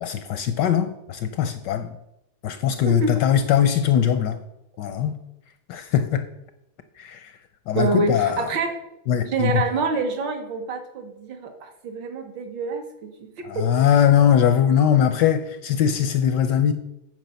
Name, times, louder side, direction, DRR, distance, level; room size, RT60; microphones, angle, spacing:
voice 1, 0.0-2.0 2.4-4.4 4.8-5.2 5.7-6.2 7.0-7.4 7.7-8.5 9.1-9.6 13.4-16.7, left 9 dB, 75° left, 1.0 m, -21 dB
voice 2, 7.8-8.7 9.2-13.7, right 4 dB, 65° right, 1.8 m, -27 dB
9.1 x 4.9 x 6.8 m
omnidirectional pair, 2.3 m